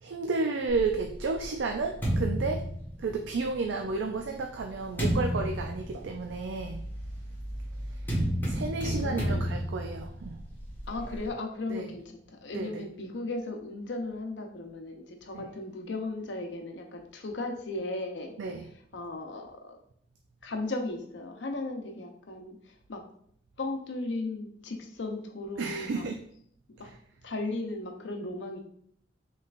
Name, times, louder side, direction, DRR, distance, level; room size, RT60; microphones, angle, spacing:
voice 1, 0.0-2.6 3.0-6.8 7.9-8.0 8.5-10.4 11.7-11.9 12.5-12.8 15.3-15.4 18.4-18.6 25.6-26.2, right 4 dB, 80° right, 4 dB, 0.4 m, -32 dB
sound 1, 0.7-3.5 4.2-11.3, equal, 10° left, 1.4 m, -32 dB
voice 2, 8.8-9.5 10.9-19.8 20.4-23.0 23.6-26.1 26.8-27.0 27.2-28.6, left 2 dB, 70° left, 3 dB, 0.7 m, -36 dB
5.5 x 3.2 x 2.5 m, 0.64 s
head